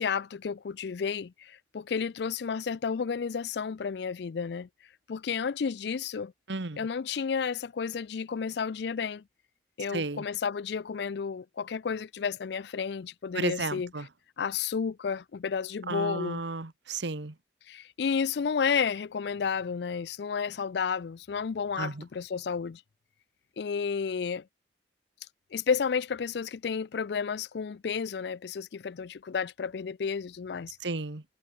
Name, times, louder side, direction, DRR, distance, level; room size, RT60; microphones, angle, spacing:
voice 1, 0.0-4.7 5.1-6.3 6.8-9.2 9.8-13.9 14.4-16.4 17.7-22.8 23.6-24.4 25.5-30.8, left 6 dB, 60° left, 0.4 m, -31 dB
voice 2, 6.5-6.8 9.9-10.2 13.3-14.1 15.9-17.3 21.8-22.0 30.8-31.2, right 3 dB, 75° right, 1.3 m, -33 dB
head